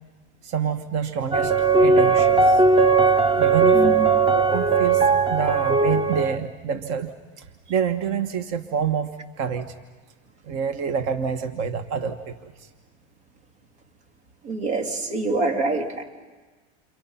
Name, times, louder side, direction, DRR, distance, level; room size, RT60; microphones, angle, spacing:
voice 1, 0.4-2.6 3.4-3.9 4.3-9.8 10.4-12.7, right 7 dB, 50° right, 8 dB, 1.4 m, -28 dB
sound 1, 1.3-6.4, right 4 dB, 20° right, 0.8 m, -18 dB
voice 2, 3.7-4.1 14.4-16.0, right 3 dB, 90° right, 4 dB, 3.4 m, -25 dB
29.5 x 28.0 x 5.8 m, 1.4 s
supercardioid pair, 125°, 32 cm